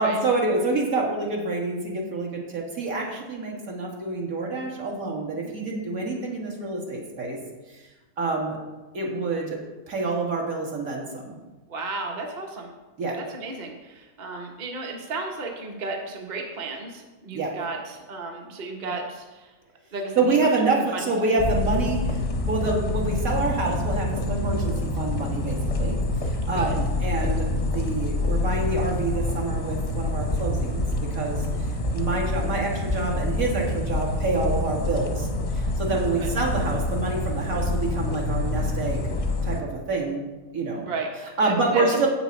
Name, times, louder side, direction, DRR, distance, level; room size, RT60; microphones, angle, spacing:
voice 1, 0.0-7.4 8.2-8.6 8.9-9.6 9.9-11.4 13.0-13.2 17.3-17.5 20.2-22.2 22.5-26.0 26.2-31.5 31.9-35.3 35.5-39.0 39.4-40.2 40.5-40.9 41.4-42.1, right 3 dB, 65° right, -2 dB, 2.1 m, -27 dB
voice 2, 11.7-12.7 13.1-19.5 19.9-20.5 20.9-21.4 26.5-26.8 27.1-27.3 31.5-31.8 36.2-36.3 40.8-42.1, right 3 dB, 35° right, 2 dB, 0.9 m, -34 dB
sound 1, 21.4-39.6, left 2 dB, 35° left, 0.6 m, -27 dB
7.9 x 6.0 x 5.3 m, 1.2 s
omnidirectional pair, 1.6 m